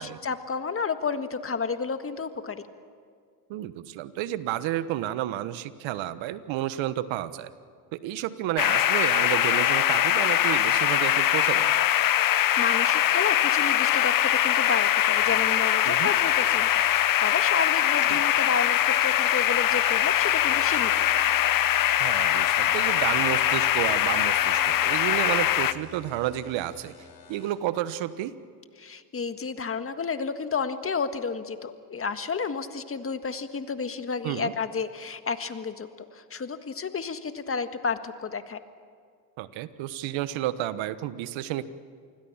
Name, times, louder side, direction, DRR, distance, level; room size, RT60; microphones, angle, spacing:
voice 1, 0.0-2.7 12.3-21.1 28.8-38.6, left 5 dB, 25° left, 9 dB, 1.7 m, -31 dB
voice 2, 3.5-7.5 7.9-11.9 15.8-16.1 18.1-18.2 22.0-26.9 27.3-28.3 34.2-34.5 39.4-41.7, right 13 dB, 70° right, 14 dB, 1.3 m, -31 dB
sound 1, 8.6-25.7, left 12 dB, 45° left, 1.0 m, -22 dB
sound 2, 15.2-27.6, left 7 dB, 60° left, 4.3 m, -49 dB
27.5 x 20.5 x 7.3 m, 2.2 s
supercardioid pair, 80°, 48 cm